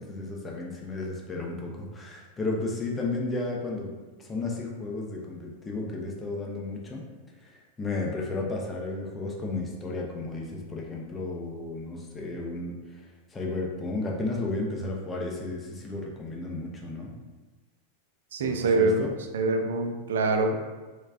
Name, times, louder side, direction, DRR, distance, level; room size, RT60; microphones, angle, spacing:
voice 1, 0.0-3.9 4.2-7.0 7.8-13.0 13.3-17.1 18.4-19.1, left 2 dB, 20° left, -1 dB, 0.6 m, -33 dB
voice 2, 18.3-19.0 19.3-20.6, right 3 dB, 60° right, 5 dB, 0.4 m, -24 dB
3.5 x 3.1 x 2.4 m, 1.2 s
figure-of-eight pair, 90°, 0 cm